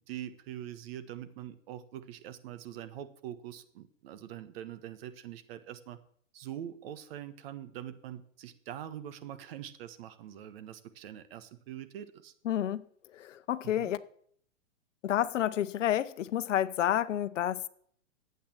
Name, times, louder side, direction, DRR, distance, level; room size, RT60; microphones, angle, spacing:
voice 1, 0.0-6.0 6.3-12.3 13.6-13.9, right 11 dB, 50° right, 1.4 m, -44 dB
voice 2, 12.4-12.8 13.1-14.0 15.0-17.7, left 11 dB, 65° left, 0.9 m, -30 dB
12.0 x 8.7 x 7.4 m
hypercardioid pair, 135°, 39 cm